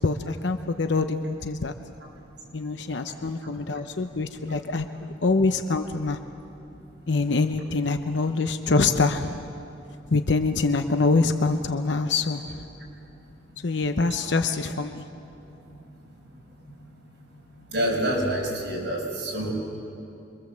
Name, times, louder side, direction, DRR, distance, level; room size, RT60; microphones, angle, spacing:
voice 1, 0.0-1.7 2.5-4.9 5.2-6.2 7.1-9.4 10.1-12.6 13.6-15.0, left 3 dB, 65° left, 7 dB, 0.9 m, -25 dB
voice 2, 17.7-19.5, right 1 dB, 60° right, -2 dB, 6.5 m, -27 dB
26.0 x 23.5 x 7.5 m, 2.7 s
head